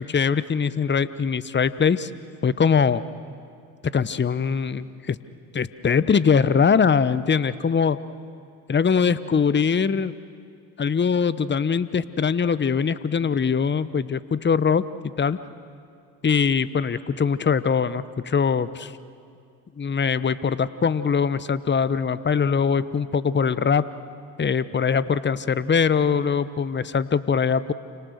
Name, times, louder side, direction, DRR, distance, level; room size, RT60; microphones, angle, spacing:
voice 1, 0.1-2.1 2.4-3.0 3.9-5.2 5.5-8.0 8.7-10.1 10.8-14.8 15.2-15.4 16.2-18.9 19.8-23.8 24.4-27.7, left 6 dB, 25° left, 16 dB, 1.0 m, -22 dB
29.5 x 25.5 x 6.6 m, 2.3 s
hypercardioid pair, 60°, 47 cm